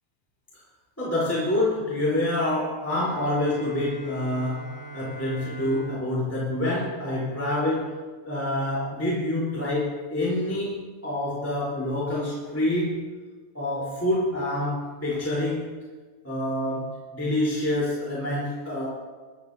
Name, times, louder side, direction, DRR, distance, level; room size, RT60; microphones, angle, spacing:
voice 1, 1.0-8.0 8.2-13.0 13.5-15.7 16.2-18.9, left 1 dB, 5° left, -8 dB, 3.0 m, -27 dB
Bowed string instrument, 2.9-7.8, right 2 dB, 55° left, 1.7 m, -43 dB
25.0 x 12.0 x 2.7 m, 1.4 s
omnidirectional pair, 4.8 m